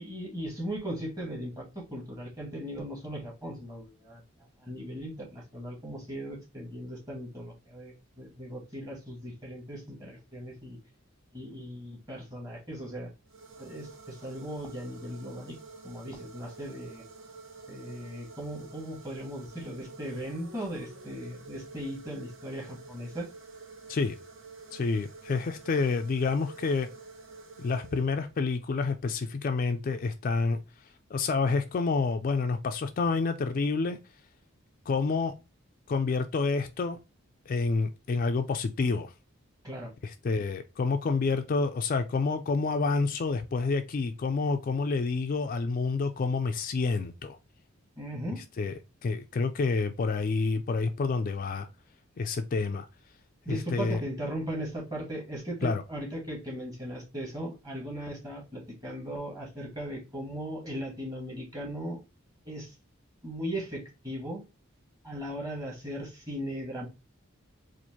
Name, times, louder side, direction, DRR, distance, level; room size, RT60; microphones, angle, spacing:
voice 1, 0.0-4.2 4.6-10.8 11.3-13.1 13.6-15.6 15.8-17.0 17.7-23.3 39.6-39.9 48.0-48.4 53.4-62.0 62.4-62.7 63.2-64.4 65.0-66.9, equal, 20° right, 1.4 m, -38 dB
sound 1, 13.3-28.5, right 4 dB, 65° right, 0.8 m, -49 dB
voice 2, 24.7-26.9 27.6-30.6 31.1-34.0 34.9-35.3 35.9-37.0 37.5-39.1 40.2-47.4 48.6-48.7 49.0-51.7 52.2-52.9 53.5-54.0 55.6-55.8, left 4 dB, 40° left, 0.3 m, -28 dB
4.4 x 2.5 x 2.8 m
head